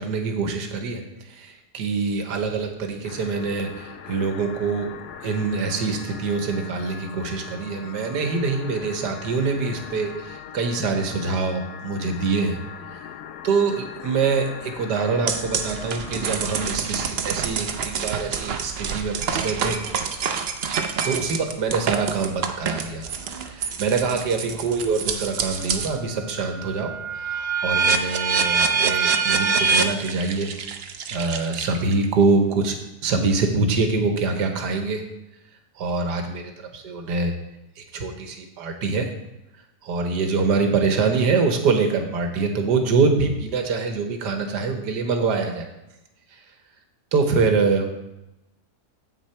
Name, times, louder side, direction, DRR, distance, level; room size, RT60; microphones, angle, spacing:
voice 1, 0.0-5.0 5.2-12.6 13.4-19.8 21.0-30.5 30.8-32.7 33.0-35.0 35.8-37.4 37.8-39.1 39.8-45.7 46.3-46.4 47.1-47.9, right 4 dB, 90° right, 5 dB, 1.6 m, -24 dB
sound 1, 3.0-16.8, left 8 dB, 75° left, 1.1 m, -40 dB
sound 2, 15.3-26.0 26.4-32.0, right 5 dB, 60° right, 0.6 m, -26 dB
8.1 x 6.6 x 4.3 m, 0.94 s
omnidirectional pair, 1.7 m